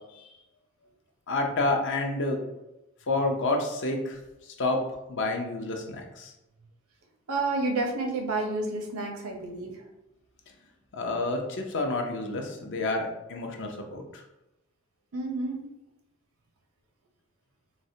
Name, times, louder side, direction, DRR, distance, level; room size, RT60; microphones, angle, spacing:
voice 1, 1.3-2.4 3.1-4.2 4.4-4.8 5.1-6.3 10.9-14.0, left 2 dB, 60° left, 2 dB, 0.5 m, -29 dB
voice 2, 7.3-9.9 15.1-15.7, right 2 dB, 85° right, 3 dB, 0.6 m, -30 dB
3.9 x 2.1 x 2.7 m, 0.95 s
head